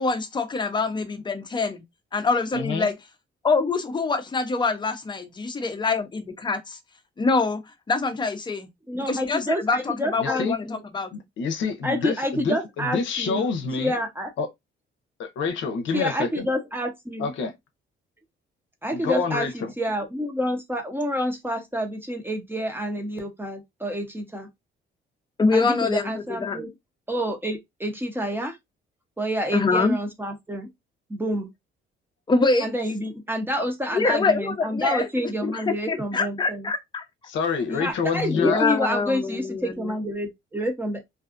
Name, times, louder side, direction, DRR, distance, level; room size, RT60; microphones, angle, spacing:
voice 1, 0.0-1.8 2.1-2.9 3.4-6.8 7.2-7.6 7.9-8.7 8.9-11.1 25.4-26.6 29.5-29.9 32.3-32.7 33.9-35.1 35.4-37.0 38.3-39.9, left 4 dB, 25° left, 0.6 m, -25 dB
voice 2, 2.5-2.9 10.2-10.6 11.1-13.9 14.4-14.5 15.2-16.5 17.2-17.5 18.9-19.7 37.3-38.6, left 5 dB, 75° left, 0.6 m, -27 dB
voice 3, 8.9-10.8 11.8-13.5 13.8-14.3 15.9-17.3 18.8-24.5 25.5-26.7 27.1-28.6 29.2-30.7 31.1-31.5 32.6-36.7 37.7-41.0, equal, 10° right, 0.7 m, -28 dB
2.5 x 2.3 x 2.4 m
cardioid pair, 90°, 20 cm